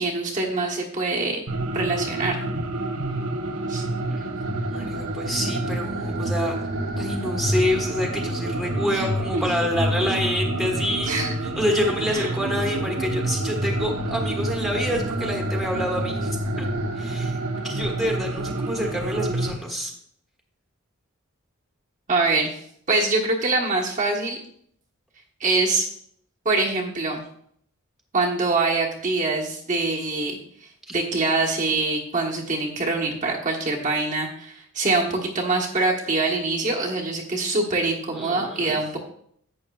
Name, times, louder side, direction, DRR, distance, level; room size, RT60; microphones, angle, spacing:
voice 1, 0.0-1.4 1.7-2.4 3.7-3.9 8.9-9.1 9.3-9.4 11.1-11.3 12.1-12.3 22.1-22.6 22.9-24.4 25.4-25.9 26.4-27.2 28.1-30.4 30.9-39.0, right 3 dB, 35° right, -2 dB, 1.2 m, -24 dB
sound 1, 1.5-19.5, right 1 dB, 80° right, 1.0 m, -28 dB
voice 2, 4.6-6.5 7.0-11.1 11.4-16.7 16.9-19.9 38.1-38.8, left 1 dB, ahead, -1 dB, 1.3 m, -27 dB
11.0 x 8.7 x 2.3 m, 0.68 s
head